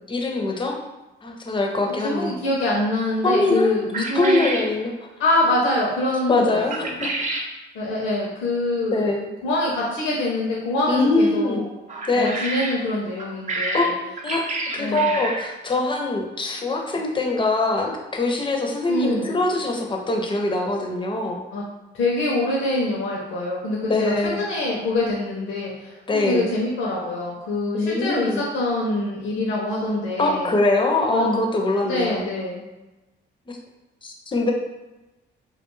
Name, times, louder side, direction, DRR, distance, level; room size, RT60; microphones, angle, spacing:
voice 1, 0.1-0.8 1.2-2.4 3.2-3.7 4.1-4.9 6.3-7.1 8.9-9.3 10.9-11.7 12.1-12.4 13.7-13.8 14.2-14.4 14.7-21.4 23.9-24.4 26.1-26.5 27.7-28.4 30.2-32.3 33.5-33.6 34.0-34.5, left 2 dB, 25° left, 1 dB, 0.5 m, -23 dB
voice 2, 2.0-4.4 5.2-7.1 7.7-9.1 9.4-11.6 12.1-13.9 14.8-15.2 18.9-19.3 21.5-21.6 21.9-25.9 26.2-30.6 31.1-31.4 31.8-32.6, left 2 dB, 75° left, -4 dB, 0.6 m, -25 dB
sound 1, 3.9-4.7 6.7-7.5 11.9-12.8 13.2-15.5, right 2 dB, 40° right, 0.5 m, -28 dB
2.4 x 2.2 x 3.0 m, 1.1 s
cardioid pair, 90°, 20 cm